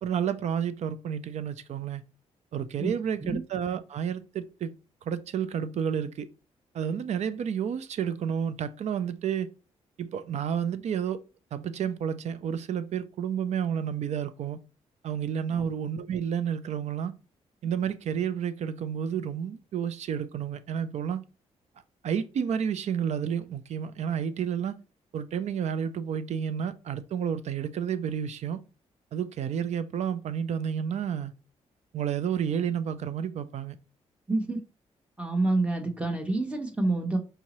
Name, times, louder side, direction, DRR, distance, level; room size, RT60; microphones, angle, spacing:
voice 1, 0.0-2.0 2.5-4.7 5.1-6.3 6.7-9.5 10.0-11.2 11.5-14.6 15.0-17.1 17.6-21.2 22.0-24.8 25.1-28.6 29.1-31.3 31.9-33.8, right 8 dB, 65° right, 0.5 m, -30 dB
voice 2, 34.3-34.6 35.2-37.2, right 2 dB, 10° right, 1.1 m, -27 dB
4.9 x 2.7 x 3.0 m
cardioid pair, 95°, 12 cm